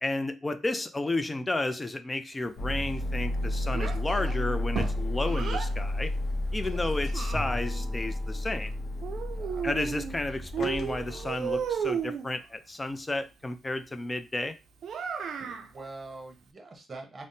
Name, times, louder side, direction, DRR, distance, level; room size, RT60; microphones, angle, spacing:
voice 1, 0.0-6.1 6.5-8.7 9.6-14.5, left 2 dB, 20° left, 0.4 m, -32 dB
sound 1, 2.6-12.0, left 1 dB, 65° left, 0.6 m, -32 dB
Child speech kid speaking, 3.7-5.7 6.6-7.9 9.0-10.2 10.5-12.3 14.8-15.7, right 7 dB, 65° right, 0.4 m, -34 dB
Bowed string instrument, 7.3-11.6, left 1 dB, 10° right, 1.1 m, -46 dB
voice 2, 9.3-9.7 15.4-17.3, right 2 dB, 30° right, 0.9 m, -44 dB
3.4 x 2.0 x 2.6 m
cardioid pair, 90°, 0 cm